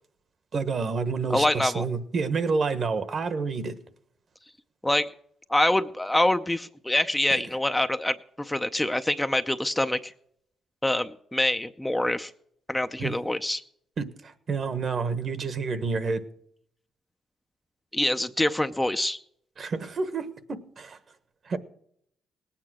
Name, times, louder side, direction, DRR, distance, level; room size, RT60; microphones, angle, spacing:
voice 1, 0.5-3.8 7.3-7.4 13.0-13.1 14.0-16.2 19.6-21.0 21.5-21.6, right 4 dB, 50° right, 1.3 m, -29 dB
voice 2, 1.3-1.9 4.8-5.1 5.5-10.1 10.8-12.3 12.7-13.6 17.9-19.2, left 1 dB, 10° left, 0.6 m, -25 dB
18.5 x 8.7 x 6.2 m
cardioid pair, 90°, 0 cm